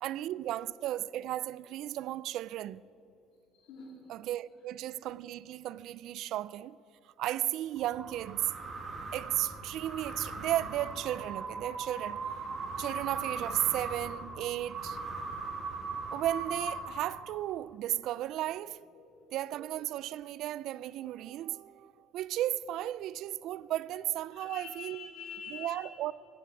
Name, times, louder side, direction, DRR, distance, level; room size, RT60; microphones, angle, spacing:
voice 1, 0.0-2.8 4.1-6.8 7.2-8.5 9.1-15.0 16.1-18.9 19.3-25.1 25.5-26.1, right 13 dB, 60° right, 0.3 m, -35 dB
voice 2, 3.6-4.1 18.9-19.2 24.3-25.9, left 6 dB, 70° left, 3.6 m, -46 dB
sound 1, 7.8-17.5, right 4 dB, 35° right, 2.0 m, -39 dB
16.0 x 9.5 x 8.4 m
cardioid pair, 140°, 0 cm